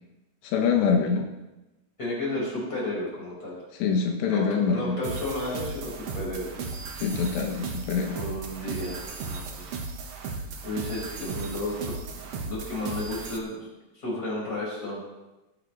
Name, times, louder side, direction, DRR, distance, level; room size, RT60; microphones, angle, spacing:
voice 1, 0.4-1.3 3.8-5.0 7.0-8.2, left 6 dB, 80° left, 2 dB, 3.4 m, -25 dB
voice 2, 2.0-3.6 4.3-6.6 8.2-9.8 10.2-11.9 12.4-13.7 13.9-15.0, left 1 dB, 20° left, -5 dB, 5.8 m, -33 dB
sound 1, 5.0-13.4, right 4 dB, 75° right, 1.4 m, -36 dB
18.5 x 9.7 x 4.1 m, 1.0 s
omnidirectional pair, 5.0 m